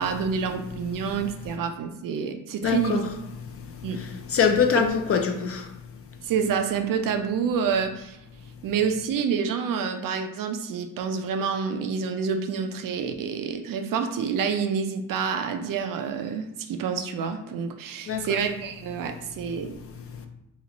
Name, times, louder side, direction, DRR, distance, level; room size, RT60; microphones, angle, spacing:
voice 1, 0.0-3.0 3.8-4.0 6.2-8.2 8.6-19.8, right 6 dB, 65° right, 0.5 m, -28 dB
voice 2, 1.0-1.5 2.6-3.1 3.4-6.3 8.4-8.7 18.1-18.4 19.5-20.3, left 6 dB, 40° left, 0.4 m, -27 dB
3.0 x 2.4 x 3.9 m
cardioid pair, 115°, 35 cm